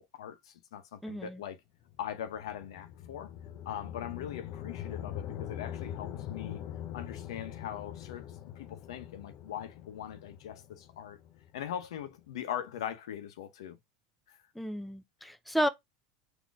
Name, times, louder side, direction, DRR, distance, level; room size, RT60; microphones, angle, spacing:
voice 1, 0.0-1.6 2.0-3.3 3.6-6.6 6.9-11.2 11.5-13.8 14.3-14.4 15.2-15.3, left 10 dB, 85° left, 0.9 m, -41 dB
voice 2, 1.0-1.4 14.6-15.7, equal, ahead, 0.6 m, -32 dB
sound 1, 1.8-12.1, left 10 dB, 50° left, 0.7 m, -43 dB
4.0 x 2.9 x 3.6 m
supercardioid pair, 115°, 3 cm